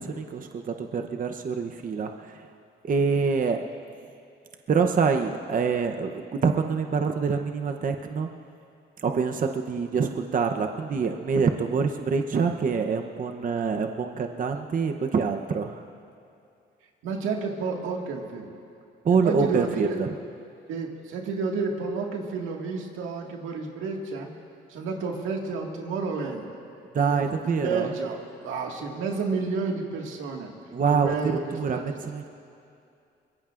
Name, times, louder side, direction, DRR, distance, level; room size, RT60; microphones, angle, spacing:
voice 1, 0.0-2.5 2.8-3.6 4.7-8.3 9.0-15.8 19.0-20.1 26.9-27.9 30.7-32.3, right 5 dB, 45° right, 5 dB, 0.8 m, -26 dB
voice 2, 17.0-18.5 19.2-20.0 20.7-24.3 24.7-26.5 27.0-30.5 30.9-32.0, right 4 dB, 90° right, 1 dB, 1.9 m, -31 dB
24.0 x 21.5 x 2.5 m, 2.5 s
cardioid pair, 90°, 20 cm